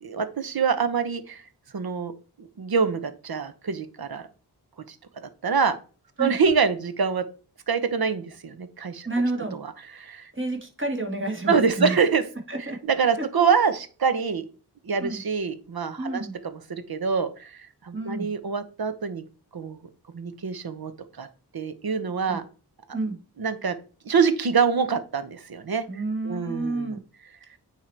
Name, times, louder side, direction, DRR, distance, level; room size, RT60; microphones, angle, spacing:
voice 1, 0.0-1.4 1.7-2.1 2.4-4.3 4.9-5.0 5.4-5.8 6.2-7.2 7.7-9.1 9.5-9.6 10.0-10.3 11.5-12.2 12.9-14.4 14.8-16.3 16.5-19.2 19.5-19.9 20.1-20.9 21.2-21.3 21.5-22.4 23.4-23.7 24.0-25.9 26.2-27.0, right 5 dB, 60° right, 11 dB, 0.9 m, -25 dB
voice 2, 9.1-9.6 10.3-12.0 12.5-12.8 13.2-13.3 15.0-15.2 16.0-16.3 17.9-18.3 22.3-22.4 22.9-23.2 25.9-27.0, right 2 dB, 30° right, 2 dB, 2.0 m, -29 dB
8.9 x 3.1 x 4.5 m, 0.38 s
cardioid pair, 45°, 41 cm